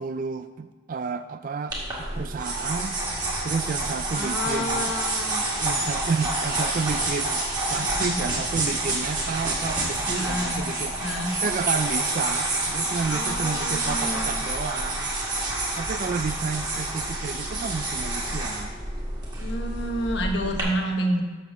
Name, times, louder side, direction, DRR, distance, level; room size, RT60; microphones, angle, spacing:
voice 1, 0.0-4.9 5.6-7.4 7.7-10.9 11.4-15.1 15.4-15.5 15.7-18.8, right 5 dB, 45° right, 10 dB, 0.3 m, -31 dB
sound 1, 1.7-20.6, right 2 dB, 20° right, 1.9 m, -28 dB
voice 2, 4.1-5.4 7.7-8.3 10.1-10.7 11.0-11.4 13.1-14.3 19.3-21.2, equal, 60° left, 3 dB, 1.1 m, -29 dB
6.9 x 6.7 x 6.3 m, 1.3 s
head